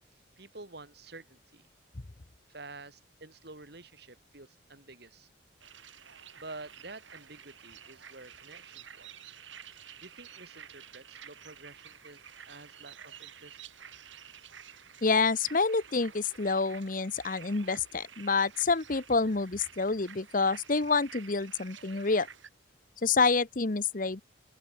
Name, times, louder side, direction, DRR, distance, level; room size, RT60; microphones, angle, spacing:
voice 1, 0.4-1.7 2.5-5.3 6.4-9.4 10.0-13.6, right 3 dB, 55° right, 2.8 m, -49 dB
sound 1, 5.6-22.5, right 8 dB, 75° right, 5.1 m, -51 dB
voice 2, 15.0-22.3 23.0-24.2, left 4 dB, 45° left, 0.9 m, -28 dB
open air
head